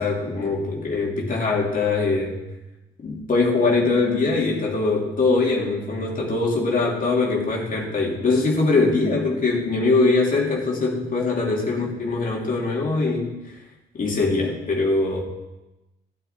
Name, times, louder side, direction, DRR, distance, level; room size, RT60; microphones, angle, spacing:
voice 1, 0.0-2.4 3.0-13.3 13.9-15.2, left 3 dB, 45° left, -3 dB, 3.1 m, -22 dB
13.0 x 11.0 x 4.5 m, 1.0 s
cardioid pair, 90°, 20 cm